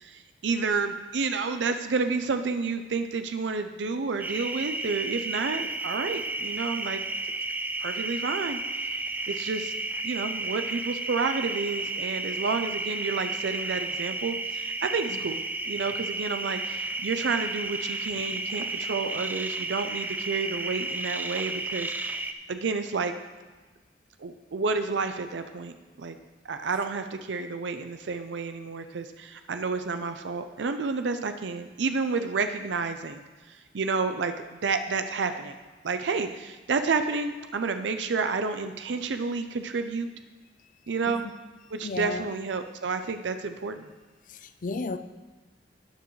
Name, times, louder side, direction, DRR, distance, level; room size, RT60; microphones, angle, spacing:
voice 1, 0.0-7.0 7.8-8.6 9.3-9.7 10.0-23.1 24.2-25.7 26.0-26.2 26.4-35.6 35.8-40.1 40.9-41.3 41.7-43.9, right 4 dB, 85° right, 8 dB, 0.5 m, -30 dB
sound 1, 4.2-22.3, right 2 dB, 10° right, 0.4 m, -32 dB
voice 2, 41.8-42.3 44.3-45.0, left 3 dB, 45° left, 11 dB, 0.5 m, -34 dB
13.0 x 9.2 x 3.2 m, 1.2 s
head